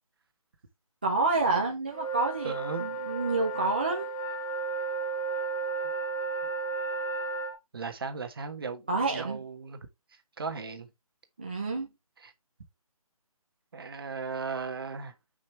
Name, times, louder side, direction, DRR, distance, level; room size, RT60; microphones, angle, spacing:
voice 1, 1.0-4.1 8.9-9.5 11.4-11.9, right 3 dB, 15° right, 0.6 m, -28 dB
sound 1, 1.9-7.5, right 3 dB, 65° left, 3.4 m, -33 dB
voice 2, 2.4-2.9 7.7-8.8 9.1-9.8 10.4-10.9 12.2-12.3 13.7-15.1, right 4 dB, 40° right, 1.4 m, -36 dB
6.7 x 5.4 x 3.5 m
hypercardioid pair, 175°, 19 cm